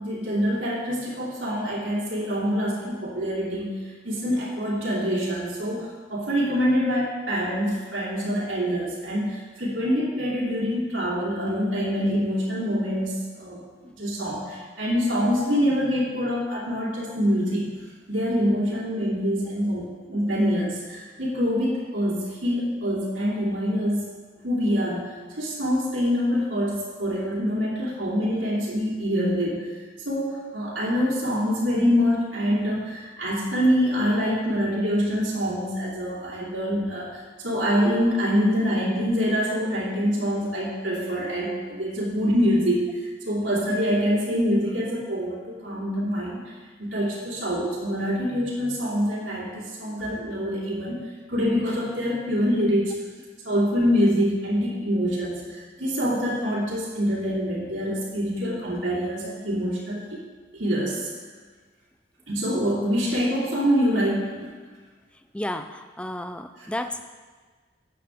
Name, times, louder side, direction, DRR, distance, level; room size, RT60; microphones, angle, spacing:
voice 1, 0.0-3.8 4.0-13.6 13.9-17.7 18.1-24.1 24.4-29.8 30.0-46.4 46.8-53.0 53.4-60.2 60.5-61.1 62.3-64.5 66.6-66.7, equal, 75° right, -8 dB, 2.7 m, -25 dB
voice 2, 65.3-67.0, left 1 dB, 5° left, 7 dB, 0.4 m, -32 dB
12.5 x 8.6 x 3.6 m, 1.4 s
head